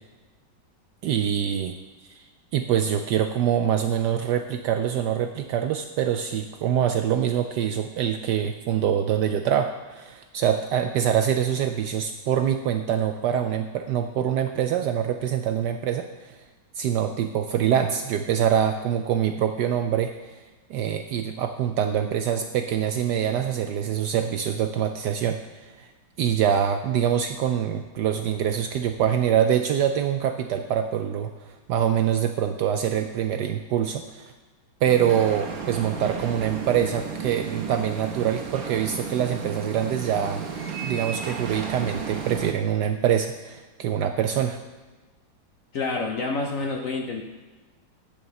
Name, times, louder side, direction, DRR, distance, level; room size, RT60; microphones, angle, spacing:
voice 1, 1.0-1.7 2.1-2.2 2.5-16.4 16.8-20.1 20.7-25.4 26.2-31.3 31.7-34.3 34.8-40.4 40.8-44.6, right 9 dB, 75° right, 7 dB, 1.0 m, -24 dB
sound 1, 34.8-42.5, right 6 dB, 50° right, 1.3 m, -33 dB
voice 2, 45.7-47.2, left 3 dB, 60° left, 3 dB, 0.9 m, -28 dB
11.0 x 5.2 x 6.9 m, 1.2 s
omnidirectional pair, 2.2 m